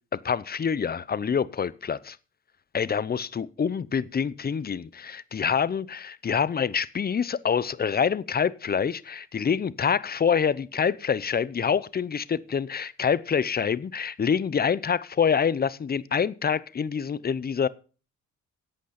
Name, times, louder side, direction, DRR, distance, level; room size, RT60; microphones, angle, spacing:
voice 1, 0.2-2.2 2.7-17.7, left 7 dB, 30° left, 0.7 m, -26 dB
12.0 x 8.3 x 5.8 m
cardioid pair, 90°, 30 cm